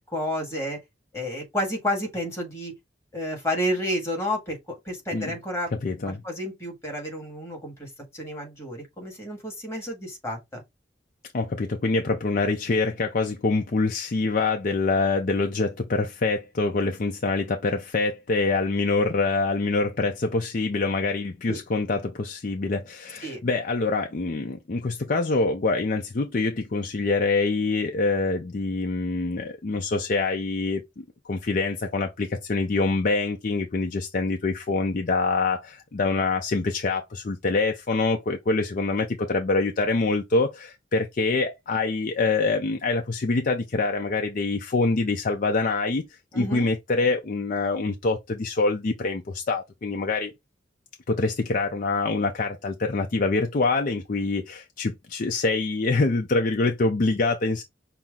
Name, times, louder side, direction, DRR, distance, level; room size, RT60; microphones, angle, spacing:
voice 1, 0.1-0.8 1.1-2.8 3.1-5.7 6.0-10.6 21.5-21.6 23.2-23.4 46.3-46.7, equal, 15° left, 1.6 m, -30 dB
voice 2, 5.8-6.2 11.3-46.0 46.3-50.3 51.1-57.6, left 3 dB, 45° left, 0.5 m, -25 dB
5.9 x 2.0 x 3.6 m
head